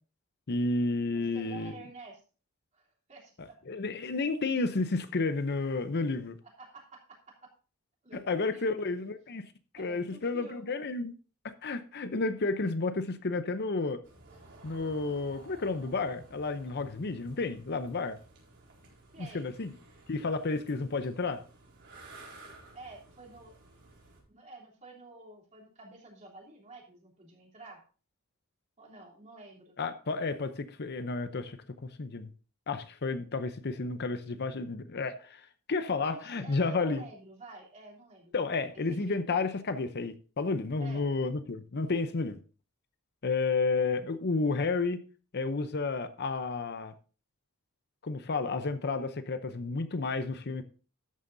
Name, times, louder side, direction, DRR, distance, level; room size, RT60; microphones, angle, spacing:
voice 1, 0.5-1.8 3.4-6.4 8.1-9.5 9.7-11.1 11.4-14.0 14.6-18.2 19.2-19.7 20.1-21.4 29.8-31.6 31.8-32.3 32.7-37.0 38.3-42.4 43.2-45.0 45.3-46.9 48.0-50.6, left 3 dB, 50° left, 0.7 m, -31 dB
voice 2, 1.1-2.2 2.7-3.3 6.6-7.5 8.0-8.8 9.8-10.8 19.1-19.5 22.7-23.6 24.3-27.8 28.8-29.8 36.0-39.2 40.8-41.1, right 2 dB, 35° right, 3.3 m, -50 dB
sound 1, 14.0-24.2, right 2 dB, 55° right, 4.2 m, -54 dB
13.0 x 9.1 x 2.7 m
head